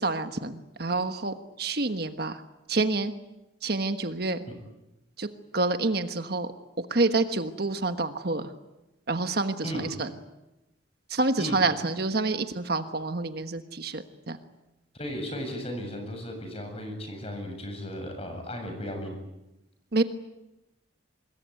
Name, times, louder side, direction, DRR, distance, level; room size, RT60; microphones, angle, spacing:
voice 1, 0.0-2.4 2.7-3.1 3.6-4.4 5.2-6.5 6.8-8.5 9.1-10.1 11.1-14.4 19.9-20.0, right 3 dB, 55° right, 8 dB, 1.3 m, -28 dB
voice 2, 14.9-19.1, equal, 30° left, 5 dB, 7.5 m, -35 dB
26.0 x 21.0 x 9.4 m, 0.97 s
head